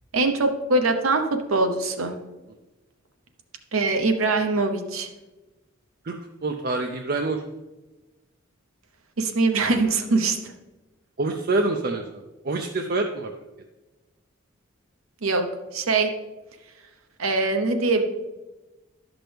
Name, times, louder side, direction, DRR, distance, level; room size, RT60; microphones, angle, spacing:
voice 1, 0.1-1.2 1.5-2.2 3.7-5.1 9.2-10.5 15.2-15.4 15.7-16.1 17.2-18.0, right 3 dB, 85° right, 5 dB, 0.9 m, -22 dB
voice 2, 6.4-7.4 11.2-12.0 12.4-13.3, right 2 dB, 45° right, 4 dB, 0.5 m, -26 dB
11.5 x 6.0 x 3.4 m, 1.1 s
head